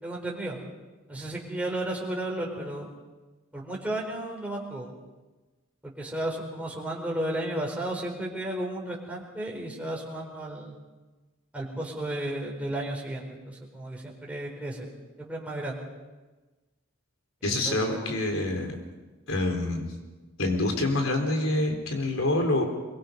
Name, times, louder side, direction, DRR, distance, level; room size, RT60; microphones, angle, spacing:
voice 1, 0.0-0.6 1.1-2.9 3.5-4.9 5.8-10.7 11.5-14.9 15.2-15.8 17.4-18.1, right 1 dB, 5° right, -2 dB, 4.4 m, -33 dB
voice 2, 17.4-18.7 19.3-19.9 20.4-22.6, left 2 dB, 75° left, 4 dB, 4.2 m, -26 dB
23.5 x 23.0 x 5.4 m, 1.2 s
head